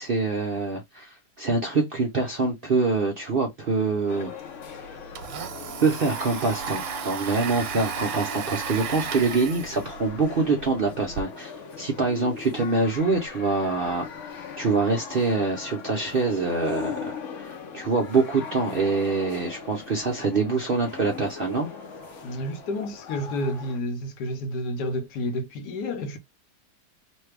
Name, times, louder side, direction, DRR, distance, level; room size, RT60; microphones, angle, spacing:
voice 1, 0.0-4.3 5.8-11.5 11.8-21.7, right 3 dB, 55° right, 0.6 m, -25 dB
sound 1, 4.1-23.8, left 6 dB, 60° left, 0.9 m, -40 dB
Domestic sounds home sounds, 4.2-4.3 4.6-11.2, right 6 dB, 75° right, 1.1 m, -34 dB
voice 2, 22.2-26.2, left 1 dB, 75° left, 1.3 m, -30 dB
3.2 x 2.2 x 3.2 m
omnidirectional pair, 1.8 m